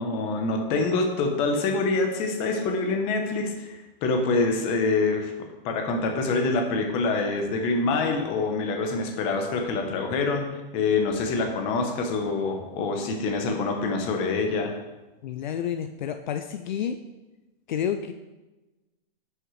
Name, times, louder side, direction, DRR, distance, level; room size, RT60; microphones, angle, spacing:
voice 1, 0.0-5.3 5.6-10.5 10.7-14.7, left 3 dB, 20° left, 3 dB, 0.8 m, -25 dB
voice 2, 15.2-17.0 17.7-18.1, left 9 dB, 55° left, 8 dB, 0.5 m, -29 dB
9.6 x 6.4 x 3.2 m, 1.1 s
hypercardioid pair, 170°, 29 cm